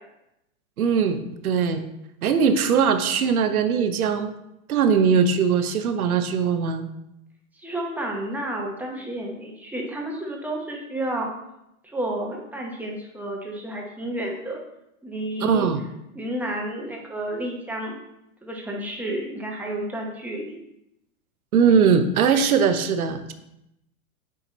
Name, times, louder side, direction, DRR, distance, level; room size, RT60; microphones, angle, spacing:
voice 1, 0.8-1.8 2.2-4.3 4.7-6.9 15.4-15.8 21.5-23.3, right 6 dB, 85° right, 9 dB, 0.8 m, -20 dB
voice 2, 7.6-11.3 11.8-14.6 15.0-15.7 16.1-18.0 18.4-20.6, right 1 dB, 5° right, -1 dB, 0.9 m, -31 dB
8.5 x 2.9 x 4.0 m, 0.85 s
hypercardioid pair, 120°, 42 cm